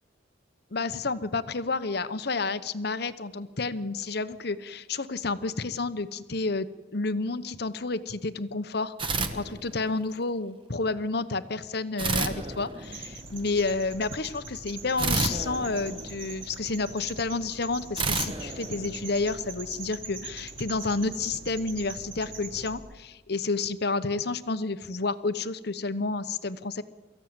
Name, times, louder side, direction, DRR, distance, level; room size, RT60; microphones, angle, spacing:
voice 1, 0.7-6.7 6.9-26.8, left 3 dB, 55° left, 13 dB, 0.9 m, -30 dB
sound 1, 9.0-10.1 12.0-13.4 15.0-16.7 18.0-19.5, right 3 dB, 25° right, 1.3 m, -31 dB
sound 2, 12.8-22.7, right 4 dB, 80° right, 4.1 m, -42 dB
24.0 x 14.5 x 8.9 m, 1.3 s
head